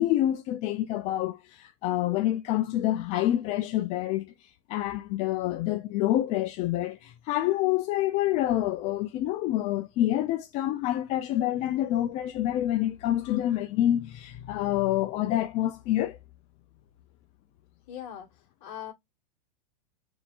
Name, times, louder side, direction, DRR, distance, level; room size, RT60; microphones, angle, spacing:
voice 1, 0.0-16.2, left 13 dB, 30° left, 0.4 m, -27 dB
voice 2, 17.9-18.9, left 10 dB, 50° left, 1.9 m, -41 dB
3.9 x 3.7 x 2.4 m
hypercardioid pair, 135°, 21 cm